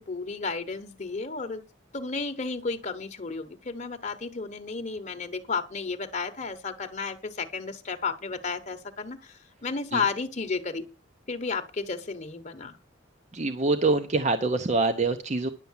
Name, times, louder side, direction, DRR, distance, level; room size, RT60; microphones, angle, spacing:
voice 1, 0.0-1.6 1.9-10.8 11.3-12.8, left 4 dB, 40° left, 8 dB, 0.9 m, -32 dB
voice 2, 13.3-15.5, right 3 dB, 35° right, 8 dB, 0.8 m, -25 dB
11.0 x 7.0 x 7.2 m, 0.32 s
head